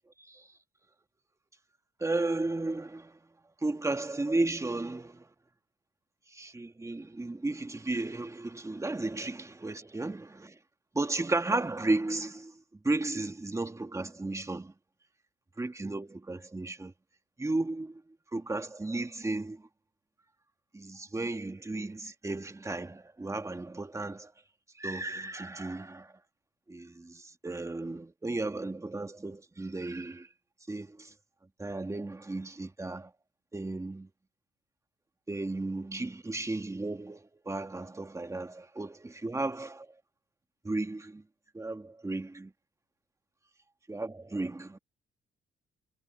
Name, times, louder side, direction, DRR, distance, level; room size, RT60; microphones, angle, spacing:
voice 1, 2.0-3.2 3.6-5.3 6.3-10.6 10.9-14.7 15.6-16.9 17.4-18.0 18.3-19.7 20.7-24.3 24.8-26.1 26.7-30.3 30.7-31.1 31.6-33.1 33.5-34.1 35.3-39.9 40.6-41.2 41.5-42.5 43.9-44.8, right 2 dB, 15° right, 2.0 m, -34 dB
cardioid pair, 90°, 20 cm